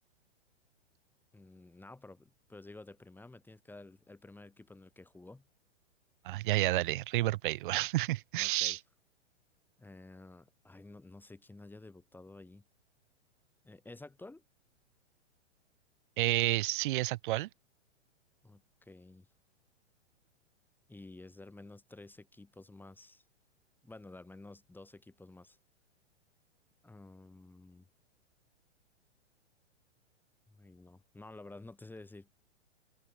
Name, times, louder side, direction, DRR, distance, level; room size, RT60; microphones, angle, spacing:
voice 1, 1.3-5.5 8.4-8.8 9.8-12.6 13.6-14.4 18.4-19.3 20.9-23.2 23.8-25.6 26.8-27.9 30.5-32.3, left 2 dB, 5° left, 3.4 m, -52 dB
voice 2, 6.2-8.8 16.2-17.5, right 17 dB, 45° right, 1.2 m, -30 dB
open air
figure-of-eight pair, 110°, 35 cm